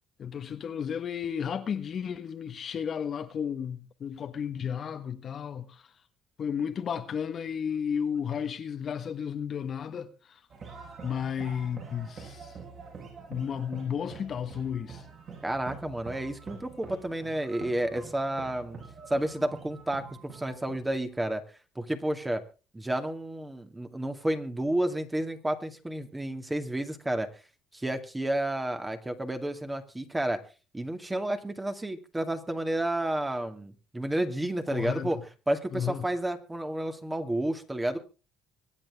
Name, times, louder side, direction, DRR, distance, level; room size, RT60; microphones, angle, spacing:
voice 1, 0.2-5.8 6.4-10.4 11.0-12.5 13.3-15.0 34.7-35.1 35.7-36.1, left 7 dB, 45° left, 1.4 m, -33 dB
sound 1, 10.5-21.1, right 5 dB, 45° right, 7.4 m, -46 dB
voice 2, 15.4-18.8 19.1-21.4 21.8-22.4 22.7-27.3 27.7-30.4 30.7-35.2 35.5-38.0, right 1 dB, 10° right, 2.2 m, -31 dB
24.5 x 9.1 x 3.6 m
cardioid pair, 95°, 0 cm